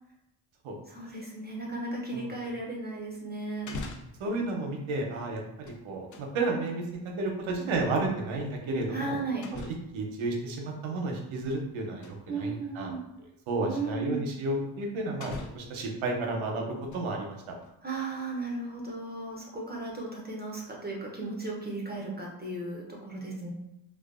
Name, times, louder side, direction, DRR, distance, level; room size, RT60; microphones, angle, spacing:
voice 1, 0.9-3.7 8.9-9.5 12.3-13.0 13.6-14.2 17.8-23.5, right 3 dB, 20° right, -2 dB, 0.7 m, -35 dB
sound 1, 3.6-4.3 5.4-6.3 8.0-8.1 9.4-10.0 11.1-11.7 12.0-12.2 13.1-13.2 14.6-14.7 15.2-15.8 16.6-17.2 17.6-17.7, left 3 dB, 40° left, 0.4 m, -43 dB
voice 2, 4.2-6.8 7.2-9.2 9.5-9.6 9.9-12.9 13.5-17.4, right 2 dB, 75° right, 1 dB, 0.7 m, -32 dB
2.5 x 2.2 x 2.4 m, 0.88 s
supercardioid pair, 60°, 49 cm